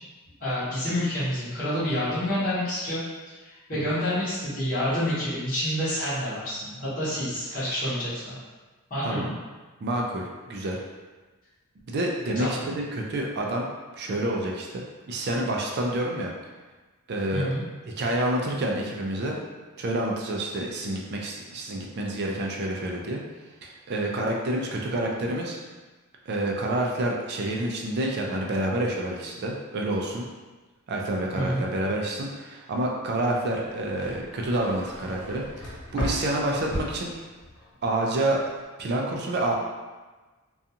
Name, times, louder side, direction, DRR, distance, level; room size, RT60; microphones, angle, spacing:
voice 1, 0.4-8.3 8.9-9.3 12.4-12.7 17.3-17.6 31.3-31.6, equal, 40° left, -12 dB, 1.0 m, -28 dB
voice 2, 9.8-10.8 11.9-13.7 13.9-16.3 17.1-17.5 17.9-19.4 19.8-23.2 23.6-25.6 26.3-30.2 30.9-37.1 37.8-38.4 38.8-39.5, right 1 dB, 50° right, 0 dB, 0.3 m, -28 dB
sound 1, 33.4-37.7 38.0-38.6, equal, 75° left, 0.7 m, -36 dB
2.5 x 2.3 x 2.7 m, 1.3 s
head